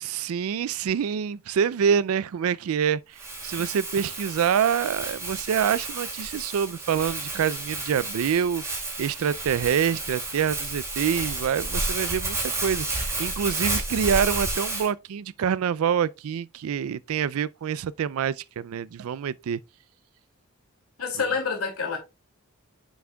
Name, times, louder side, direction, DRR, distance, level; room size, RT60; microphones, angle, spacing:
voice 1, 0.0-19.6, right 7 dB, 80° right, 0.4 m, -26 dB
Crumpling crinkling, 3.2-14.9, right 2 dB, 15° right, 2.3 m, -31 dB
voice 2, 21.0-22.0, left 5 dB, 85° left, 2.4 m, -27 dB
7.3 x 6.0 x 2.2 m
head